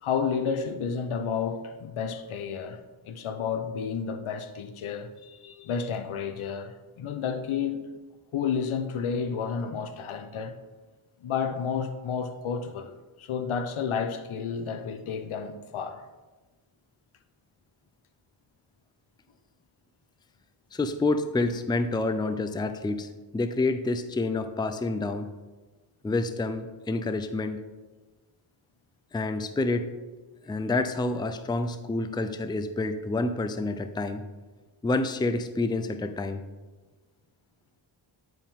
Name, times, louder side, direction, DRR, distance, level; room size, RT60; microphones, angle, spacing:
voice 1, 0.0-7.9 8.3-10.6 11.2-16.0, left 6 dB, 75° left, 0.8 m, -31 dB
voice 2, 20.7-25.3 26.0-27.6 29.1-29.9 30.4-34.2 34.8-36.4, left 2 dB, 10° left, 0.5 m, -28 dB
9.9 x 4.5 x 3.7 m
cardioid pair, 55°, 50 cm